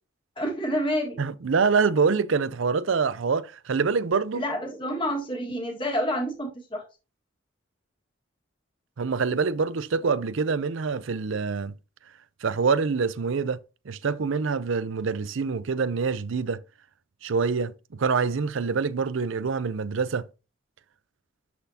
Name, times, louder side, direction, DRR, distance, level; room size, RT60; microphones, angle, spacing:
voice 1, 0.4-1.2 4.3-6.8, equal, 25° left, 1.7 m, -28 dB
voice 2, 1.2-4.4 9.0-11.7 12.4-13.6 13.9-16.6 17.2-20.3, right 5 dB, 70° right, 0.5 m, -25 dB
12.0 x 4.1 x 2.8 m
head